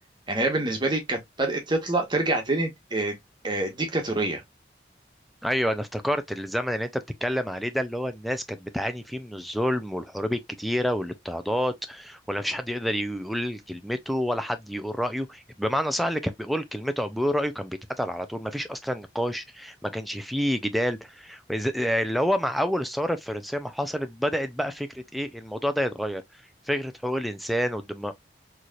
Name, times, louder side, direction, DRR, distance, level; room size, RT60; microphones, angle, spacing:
voice 1, 0.3-3.2 3.4-4.4, right 2 dB, 25° right, 1.2 m, -26 dB
voice 2, 5.4-26.2 26.7-28.1, equal, ahead, 0.4 m, -28 dB
4.2 x 3.1 x 2.4 m
head